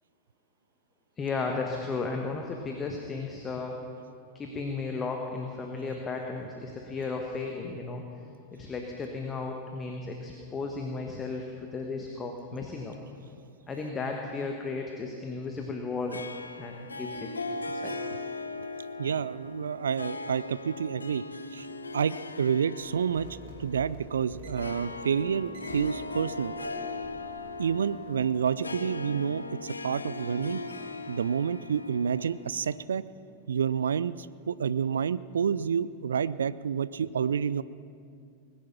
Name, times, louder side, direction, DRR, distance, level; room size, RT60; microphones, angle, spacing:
voice 1, 1.2-3.8 4.3-8.0 8.5-13.0 13.7-16.2 16.6-17.3 17.7-18.0, left 4 dB, 20° left, 2 dB, 1.4 m, -34 dB
Harp, 16.1-32.9, left 3 dB, 80° left, 0.7 m, -39 dB
voice 2, 19.0-21.2 21.5-21.7 21.9-23.3 23.6-26.5 27.6-30.6 31.1-33.0 33.5-37.6, right 7 dB, 70° right, 18 dB, 0.4 m, -29 dB
sound 1, 22.8-28.2, right 1 dB, 55° right, 3.3 m, -48 dB
20.5 x 10.5 x 5.9 m, 2.4 s
figure-of-eight pair, 90°, 0 cm